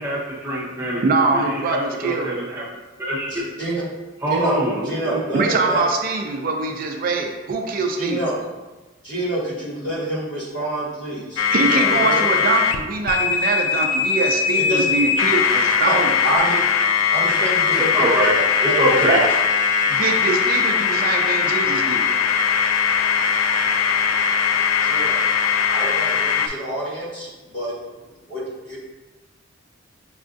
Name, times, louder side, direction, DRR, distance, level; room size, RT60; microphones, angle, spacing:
voice 1, 0.0-1.0 1.3-3.5 4.2-5.2 17.7-18.3 18.6-19.2, equal, 15° right, -7 dB, 0.7 m, -24 dB
voice 2, 1.0-2.3 5.3-8.2 11.5-16.1 19.1-19.2 19.9-22.1, right 3 dB, 45° right, 3 dB, 0.3 m, -23 dB
voice 3, 3.3-3.8 4.3-5.8 8.0-8.3 9.0-12.2 14.6-14.9 15.8-15.9 16.2-16.5 17.1-18.0 18.7-19.2 24.8-25.2 25.7-27.8 28.3-28.8, right 1 dB, 60° left, -7 dB, 1.4 m, -27 dB
sound 1, 11.4-12.8 13.0-26.5, left 6 dB, 85° left, 0.3 m, -20 dB
5.4 x 2.4 x 2.5 m, 1.2 s
head